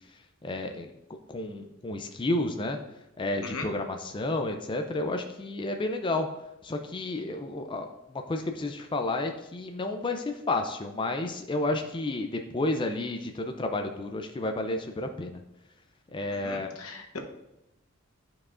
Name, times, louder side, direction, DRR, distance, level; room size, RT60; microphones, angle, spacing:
voice 1, 0.4-0.9 1.3-2.8 3.2-6.3 6.6-15.4 16.1-16.7, left 2 dB, 25° left, 5 dB, 0.4 m, -31 dB
voice 2, 16.3-17.2, left 3 dB, 85° left, 3 dB, 0.9 m, -39 dB
10.5 x 4.8 x 2.5 m, 0.90 s
head